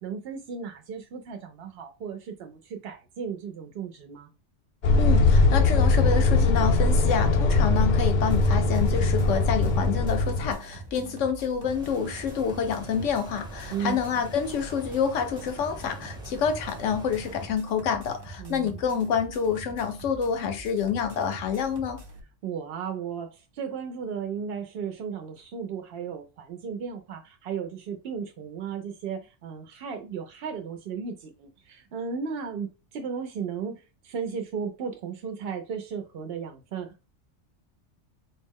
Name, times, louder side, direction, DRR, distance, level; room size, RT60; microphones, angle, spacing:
voice 1, 0.0-4.3 13.7-14.0 18.4-18.8 22.4-37.0, right 6 dB, 65° right, 0.7 m, -35 dB
sound 1, 4.8-10.5, left 3 dB, 55° left, 0.5 m, -21 dB
voice 2, 5.0-22.0, left 7 dB, 85° left, 1.1 m, -28 dB
sound 2, 8.1-22.2, right 2 dB, 45° right, 0.3 m, -44 dB
sound 3, 11.6-17.5, right 1 dB, 5° right, 0.6 m, -43 dB
4.1 x 2.0 x 3.5 m
omnidirectional pair, 1.2 m